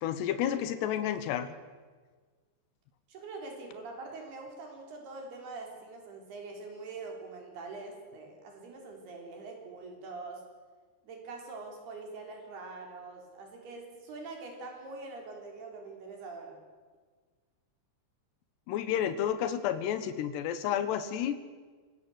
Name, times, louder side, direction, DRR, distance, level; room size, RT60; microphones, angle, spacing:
voice 1, 0.0-1.5 18.7-21.4, left 10 dB, 90° left, 12 dB, 3.4 m, -31 dB
voice 2, 3.1-10.4 11.0-16.6, right 3 dB, 70° right, 2 dB, 5.9 m, -44 dB
24.5 x 19.0 x 8.0 m, 1.5 s
omnidirectional pair, 4.7 m